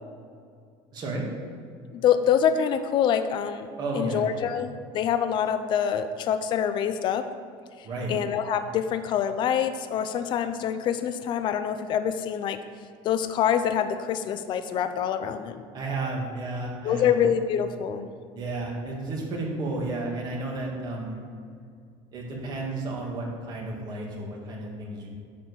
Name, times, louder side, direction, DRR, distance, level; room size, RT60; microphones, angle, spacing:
voice 1, 0.9-1.2 3.8-4.5 7.8-8.1 15.7-17.1 18.3-21.2 22.1-25.1, right 2 dB, 40° right, -2 dB, 2.3 m, -32 dB
voice 2, 1.9-3.7 4.0-7.2 8.1-12.6 13.0-15.6 16.8-18.1, left 8 dB, 45° left, 9 dB, 0.5 m, -25 dB
10.0 x 4.3 x 7.2 m, 2.3 s
cardioid pair, 140°, 11 cm